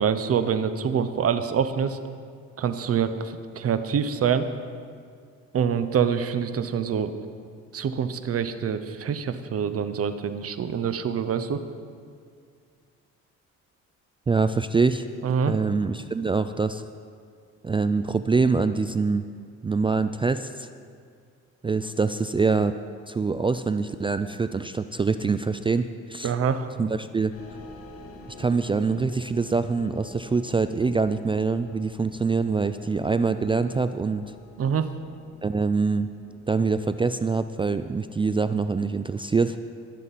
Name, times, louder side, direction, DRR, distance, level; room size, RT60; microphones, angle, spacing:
voice 1, 0.0-2.0 2.6-4.5 5.5-7.1 7.7-11.6 15.2-15.6 26.2-26.7 34.6-34.9, right 7 dB, 50° right, 11 dB, 0.8 m, -25 dB
voice 2, 14.3-15.1 15.4-16.8 17.6-19.2 19.6-20.7 21.6-22.7 23.1-26.3 26.8-27.3 28.4-34.2 35.4-36.1 36.5-39.6, right 4 dB, 20° right, 11 dB, 0.3 m, -24 dB
sound 1, 27.3-37.0, left 3 dB, 50° left, 2.2 m, -48 dB
20.5 x 7.5 x 4.2 m, 2.2 s
cardioid pair, 90°, 30 cm